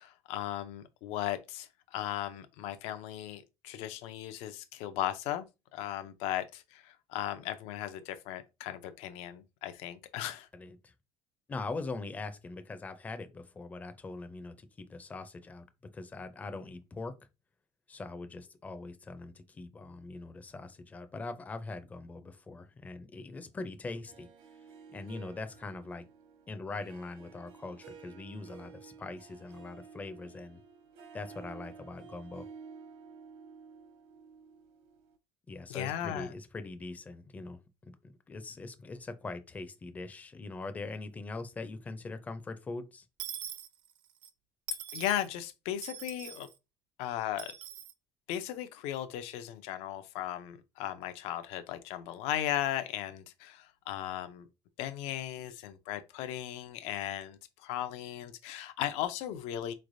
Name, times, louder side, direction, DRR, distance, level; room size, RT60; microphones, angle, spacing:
voice 1, 0.0-5.5 5.7-10.5 35.7-36.3 44.9-46.5 47.0-47.5 48.3-54.5 54.8-59.7, left 12 dB, 80° left, 0.5 m, -36 dB
voice 2, 10.5-10.9 11.5-15.6 15.9-17.1 17.9-24.3 24.9-26.1 26.5-30.6 31.1-32.5 35.5-37.6 37.9-43.0, left 3 dB, 15° left, 0.4 m, -42 dB
Harp, 24.0-35.2, right 5 dB, 75° right, 1.0 m, -52 dB
Dishes pots and pans / Coin (dropping), 43.2-44.3 44.7-45.3 45.8-46.5 47.4-47.9, right 11 dB, 45° right, 0.5 m, -43 dB
4.2 x 3.2 x 2.5 m
cardioid pair, 165°, 11 cm